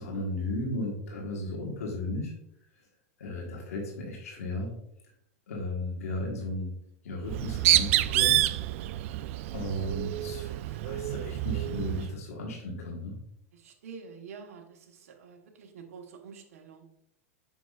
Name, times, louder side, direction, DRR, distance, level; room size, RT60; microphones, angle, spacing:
voice 1, 0.0-2.3 3.2-4.8 5.5-6.7 7.0-8.4 9.5-13.2, left 1 dB, 90° left, -1 dB, 1.5 m, -35 dB
Bird, 7.2-12.1, right 15 dB, 65° right, 0.3 m, -27 dB
voice 2, 13.5-16.8, right 5 dB, 80° right, 3 dB, 1.2 m, -47 dB
7.0 x 5.9 x 2.5 m, 0.76 s
hypercardioid pair, 120°, 8 cm